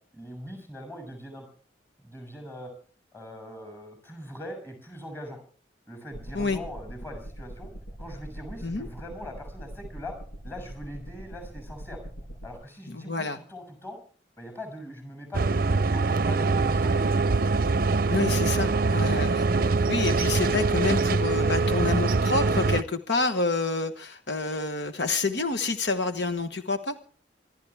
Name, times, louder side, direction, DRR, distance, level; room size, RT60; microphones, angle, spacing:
voice 1, 0.1-1.5 2.0-2.7 3.1-5.4 5.9-7.7 8.0-10.2 10.4-12.0 12.4-14.0 14.4-17.3, equal, 15° left, 6 dB, 6.6 m, -41 dB
sound 1, 6.1-12.6, equal, 90° left, 7.3 m, -42 dB
voice 2, 12.9-13.4 18.1-19.5 19.9-26.9, left 3 dB, 70° left, 8 dB, 1.2 m, -28 dB
sound 2, 15.3-22.8, right 3 dB, 50° right, 0.6 m, -23 dB
25.5 x 12.5 x 3.5 m, 0.43 s
head